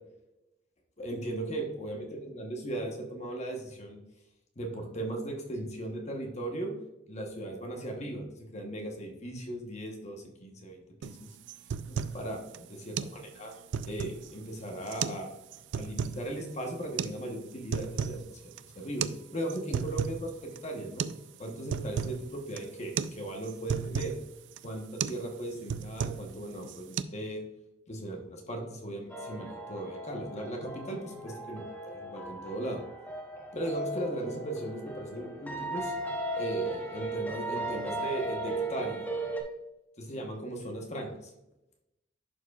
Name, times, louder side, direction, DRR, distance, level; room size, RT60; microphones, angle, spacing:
voice 1, 1.0-2.0 2.3-4.0 4.6-6.7 7.1-8.2 8.5-11.3 11.9-13.5 13.8-15.3 15.7-21.1 21.4-24.1 24.6-27.4 27.9-31.6 31.9-32.8 33.5-35.9 36.4-39.1 40.0-41.3, right 1 dB, 40° left, 2 dB, 1.0 m, -37 dB
sound 1, 11.0-11.2 11.5-12.2 12.5-12.6 13.0-13.2 13.5-14.3 14.9-15.2 15.5-16.2 17.0-17.1 17.5-18.2 18.5-18.6 19.0-19.2 19.5-20.2 20.6-20.7 21.0-21.2 21.5-22.2 22.6-22.7 23.0-23.2 23.4-24.2 24.6-24.7 25.0-25.2 25.5-26.3 26.6-27.0, right 7 dB, 75° right, 0.3 m, -33 dB
sound 2, 29.1-39.4, right 2 dB, 10° left, 0.9 m, -36 dB
11.0 x 4.7 x 2.3 m, 0.91 s
head